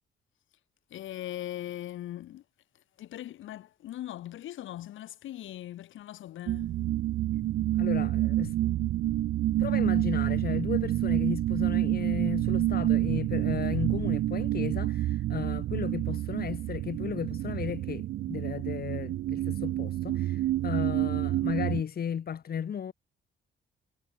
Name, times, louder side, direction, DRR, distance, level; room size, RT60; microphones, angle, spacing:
voice 1, 0.9-2.4 3.0-6.7, left 13 dB, 80° left, 2.7 m, -40 dB
sound 1, 6.5-21.8, right 14 dB, 80° right, 1.4 m, -28 dB
voice 2, 7.8-8.7 9.6-22.9, left 8 dB, 50° left, 2.1 m, -35 dB
cardioid pair, 90°, 20 cm